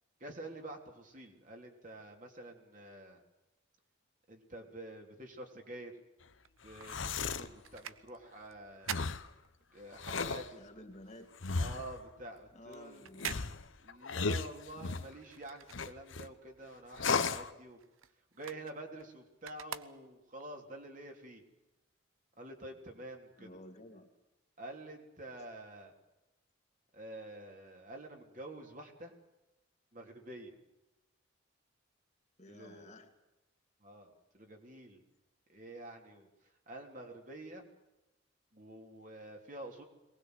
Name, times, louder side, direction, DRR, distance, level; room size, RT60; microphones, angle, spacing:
voice 1, 0.2-3.2 4.3-5.9 6.6-9.1 9.7-10.6 11.5-13.1 13.4-13.5 13.8-17.8 18.3-21.4 22.4-23.5 24.6-25.9 26.9-29.1 29.9-30.5 32.5-32.9 33.8-35.0 35.5-36.3 36.7-37.6 38.5-39.8, right 1 dB, 40° right, 3 dB, 3.3 m, -48 dB
Cassette Tape, 6.4-10.1 10.4-16.4 16.7-20.5 21.0-21.1, right 8 dB, 85° right, 0.9 m, -47 dB
sound 1, 6.7-7.5 8.9-9.3 9.9-10.5 11.4-12.0 13.2-15.1 15.7-16.3 17.0-17.5, left 4 dB, 75° left, 1.0 m, -35 dB
voice 2, 10.6-11.3 12.5-13.5 23.4-24.1 32.4-33.1, left 1 dB, 35° left, 4 dB, 2.1 m, -53 dB
22.5 x 19.5 x 8.1 m, 1.0 s
head